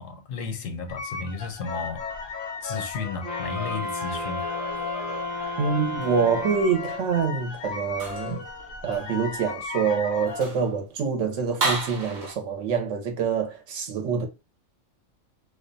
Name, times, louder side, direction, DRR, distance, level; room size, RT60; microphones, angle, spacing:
voice 1, 0.0-2.0 2.6-4.4, left 4 dB, 80° left, 1.0 m, -33 dB
sound 1, 0.9-10.4, left 4 dB, 55° left, 0.6 m, -36 dB
sound 2, 3.2-7.1, left 2 dB, 10° left, 0.4 m, -33 dB
voice 2, 5.6-8.4 8.8-14.3, right 6 dB, 70° right, 1.0 m, -26 dB
sound 3, 5.8-6.8 7.9-8.4 8.9-9.1 9.7-9.8 10.3-10.7 11.6-12.4, right 3 dB, 45° right, 0.7 m, -32 dB
2.4 x 2.1 x 2.5 m
omnidirectional pair, 1.3 m